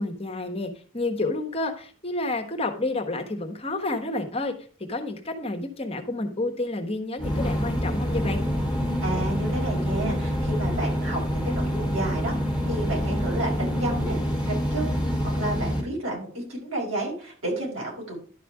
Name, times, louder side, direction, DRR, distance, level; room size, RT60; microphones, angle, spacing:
voice 1, 0.0-4.5 4.9-8.4, left 2 dB, 30° left, 4 dB, 1.2 m, -30 dB
sound 1, 7.2-15.8, equal, 5° right, 2.7 m, -26 dB
voice 2, 9.0-14.2 14.4-18.2, right 1 dB, 80° right, -2 dB, 5.4 m, -31 dB
11.5 x 5.0 x 4.8 m, 0.40 s
head